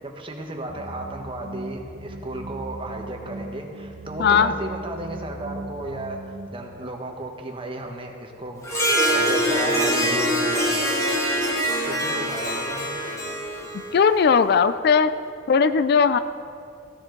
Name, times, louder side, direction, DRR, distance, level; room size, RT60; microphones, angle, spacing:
voice 1, 0.0-8.8 9.0-11.0 11.8-13.0, right 1 dB, 25° right, 2 dB, 1.2 m, -34 dB
sound 1, 0.7-6.5, right 1 dB, 75° right, 1.2 m, -38 dB
voice 2, 4.2-4.5 13.9-15.1 15.5-16.2, left 6 dB, 55° left, 12 dB, 0.3 m, -18 dB
Harp, 8.6-14.4, equal, 15° left, 1.4 m, -24 dB
15.5 x 10.0 x 3.9 m, 2.6 s
head